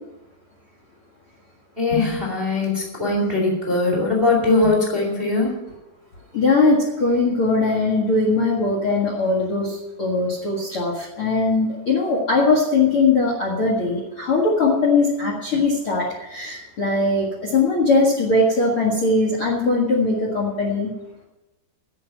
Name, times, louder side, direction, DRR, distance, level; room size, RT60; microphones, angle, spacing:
voice 1, 1.8-5.5, left 3 dB, 20° right, -1 dB, 1.4 m, -20 dB
voice 2, 6.3-20.9, left 3 dB, 85° left, -1 dB, 1.2 m, -20 dB
11.0 x 7.9 x 9.4 m, 1.0 s
omnidirectional pair, 5.6 m